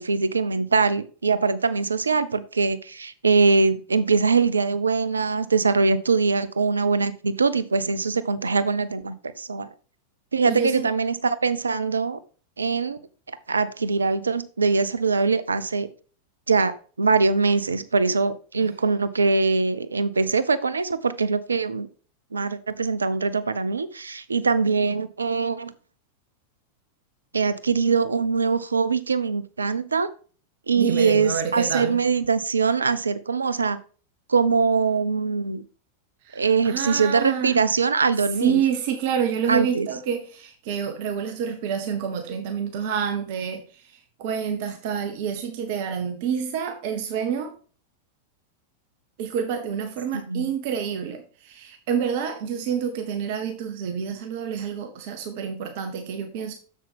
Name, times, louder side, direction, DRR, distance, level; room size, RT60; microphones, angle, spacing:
voice 1, 0.0-9.7 10.3-12.2 12.6-13.0 13.5-15.9 16.5-21.9 22.3-25.7 27.3-30.1 30.7-33.8 34.3-35.6 36.3-38.6 39.5-39.9 50.3-50.5, right 4 dB, 75° right, 0.6 m, -22 dB
voice 2, 10.5-10.9 18.6-18.7 30.7-32.0 36.2-37.7 38.4-47.5 49.2-56.5, right 7 dB, 50° right, 1.0 m, -28 dB
7.3 x 7.1 x 3.5 m
figure-of-eight pair, 90°, 0 cm